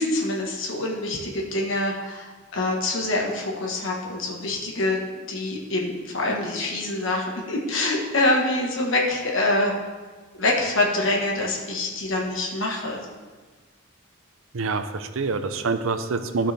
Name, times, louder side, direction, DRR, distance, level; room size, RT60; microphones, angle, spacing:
voice 1, 0.0-9.8 10.3-13.1, left 2 dB, 70° left, -1 dB, 1.5 m, -25 dB
voice 2, 14.5-16.5, right 4 dB, 80° right, 9 dB, 0.6 m, -26 dB
12.5 x 5.8 x 3.4 m, 1.3 s
head